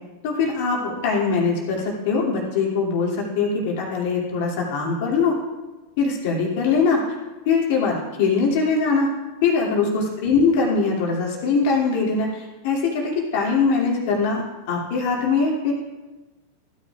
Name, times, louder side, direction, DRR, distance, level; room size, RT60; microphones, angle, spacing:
voice 1, 0.2-5.3 6.0-7.0 7.4-9.1 9.4-14.4 14.7-15.7, left 4 dB, 50° left, -3 dB, 2.7 m, -22 dB
15.5 x 9.8 x 2.5 m, 1.2 s
figure-of-eight pair, 90°, 0 cm